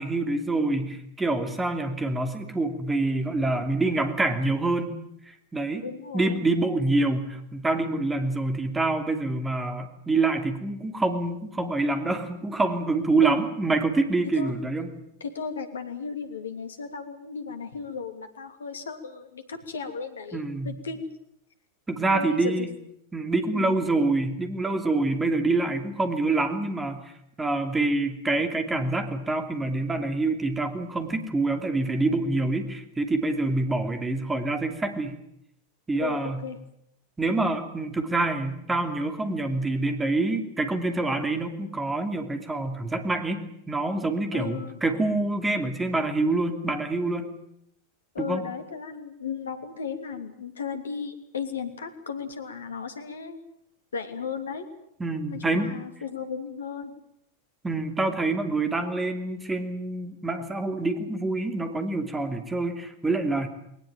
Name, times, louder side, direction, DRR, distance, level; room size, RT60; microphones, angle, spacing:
voice 1, 0.0-5.0 5.2-5.8 6.1-14.9 20.3-20.7 21.9-22.7 23.1-27.1 27.4-35.2 35.9-36.4 37.2-47.3 48.2-48.4 55.0-55.7 57.6-63.5, right 2 dB, 10° right, 7 dB, 2.8 m, -26 dB
voice 2, 5.8-6.4 13.2-13.4 14.3-14.5 15.2-21.1 22.1-22.7 23.5-23.9 36.0-36.6 44.3-44.8 48.1-53.4 53.9-54.6 55.3-56.9, left 5 dB, 70° left, 8 dB, 2.9 m, -35 dB
21.0 x 19.5 x 9.1 m, 0.75 s
figure-of-eight pair, 90°, 0 cm